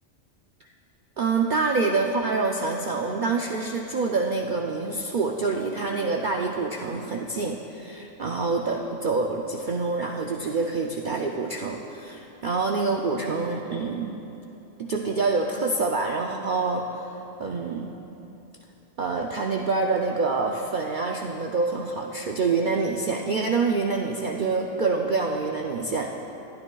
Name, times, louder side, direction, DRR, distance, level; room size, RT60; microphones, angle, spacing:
voice 1, 1.2-14.1 14.8-17.9 19.0-26.1, right 4 dB, 55° right, 1 dB, 0.5 m, -26 dB
21.0 x 9.9 x 2.3 m, 2.9 s
omnidirectional pair, 1.4 m